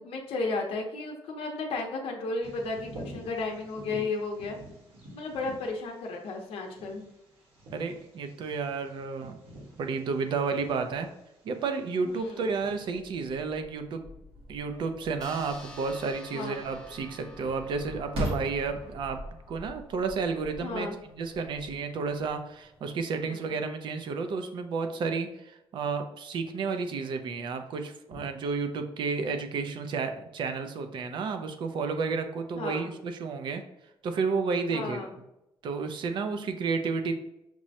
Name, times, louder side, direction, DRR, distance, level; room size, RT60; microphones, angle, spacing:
voice 1, 0.0-4.6 5.1-7.0 12.0-12.5 16.3-16.6 20.6-21.0 23.3-23.5 32.6-32.9 34.7-35.1, left 3 dB, 70° left, 1 dB, 0.7 m, -34 dB
Bird vocalization bird call bird song, 2.4-12.9, right 1 dB, 90° right, 1.4 m, -49 dB
voice 2, 7.7-9.4 9.8-11.1 11.4-14.0 14.5-19.2 19.5-33.6 34.0-35.0 35.6-37.2, right 4 dB, 55° right, 7 dB, 0.4 m, -31 dB
sound 1, 12.1-23.1, equal, 70° right, 1.2 m, -42 dB
sound 2, 15.2-20.1, left 3 dB, 5° left, 0.6 m, -51 dB
5.9 x 2.1 x 2.7 m, 0.87 s
cardioid pair, 180°, 10 cm